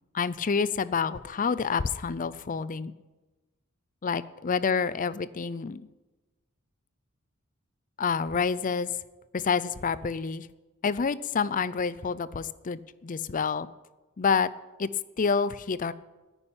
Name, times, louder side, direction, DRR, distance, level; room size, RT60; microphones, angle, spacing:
voice 1, 0.1-2.9 4.0-5.9 8.0-8.9 9.3-10.5 10.8-13.7 14.2-14.5 14.8-14.9 15.2-15.9, left 5 dB, 40° left, 17 dB, 0.5 m, -28 dB
10.0 x 9.9 x 8.8 m, 1.2 s
head